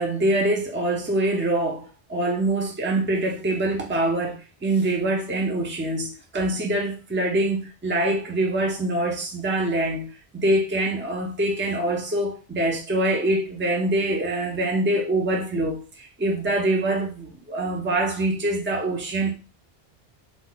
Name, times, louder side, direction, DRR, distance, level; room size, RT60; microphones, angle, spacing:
voice 1, 0.0-19.3, right 1 dB, 15° right, 0.4 m, -24 dB
2.3 x 2.2 x 3.8 m
omnidirectional pair, 1.1 m